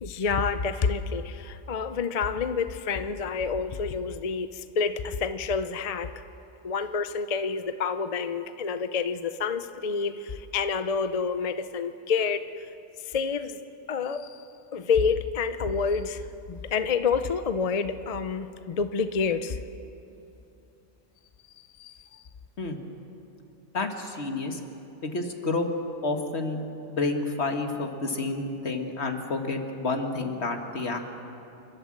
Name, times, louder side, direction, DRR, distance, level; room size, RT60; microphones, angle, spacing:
voice 1, 0.0-6.2 6.6-12.7 13.0-13.6 13.9-14.5 14.7-16.2 16.5-19.6 21.8-22.2, left 5 dB, 40° left, 10 dB, 0.6 m, -28 dB
voice 2, 23.7-24.6 25.0-25.7 26.0-26.6 26.9-31.0, left 3 dB, 65° left, 4 dB, 1.8 m, -29 dB
28.5 x 12.5 x 7.5 m, 2.8 s
omnidirectional pair, 1.2 m